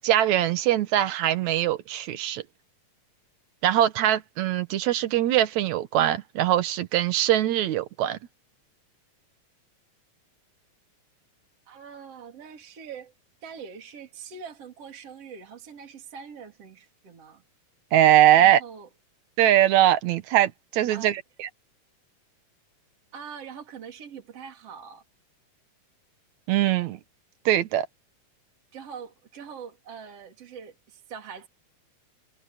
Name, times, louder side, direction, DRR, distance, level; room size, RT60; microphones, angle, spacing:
voice 1, 0.0-2.4 3.6-8.2 17.9-18.6 19.4-21.5 26.5-27.0 27.5-27.9, right 12 dB, 65° right, 2.2 m, -22 dB
voice 2, 11.7-13.1 13.4-17.4 18.4-18.9 20.9-21.2 23.1-25.0 28.7-31.5, right 6 dB, 45° right, 4.3 m, -43 dB
omnidirectional pair, 3.9 m